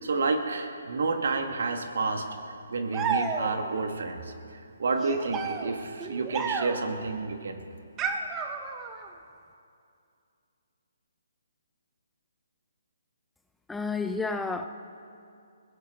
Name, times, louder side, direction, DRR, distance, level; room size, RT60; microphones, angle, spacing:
voice 1, 0.0-2.2 2.7-4.2 4.8-7.6, right 3 dB, 65° right, 5 dB, 1.7 m, -29 dB
sound 1, 2.9-3.8 5.0-7.0 8.0-9.1, right 5 dB, 20° right, 1.1 m, -32 dB
voice 2, 13.7-14.7, left 4 dB, 5° left, 7 dB, 0.5 m, -30 dB
22.0 x 16.5 x 3.8 m, 2.5 s
hypercardioid pair, 145°, 0 cm